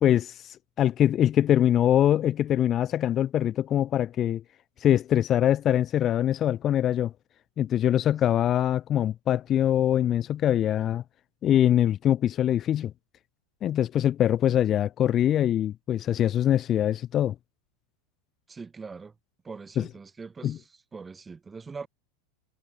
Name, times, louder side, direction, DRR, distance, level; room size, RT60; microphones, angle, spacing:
voice 1, 0.0-4.4 4.8-7.1 7.6-11.0 11.4-12.9 13.6-17.3 19.8-19.9 20.4-20.6, left 11 dB, 35° left, 1.3 m, -23 dB
voice 2, 18.5-19.1 19.4-20.6 20.9-21.9, right 4 dB, 15° right, 3.0 m, -41 dB
figure-of-eight pair, 85°, 0 cm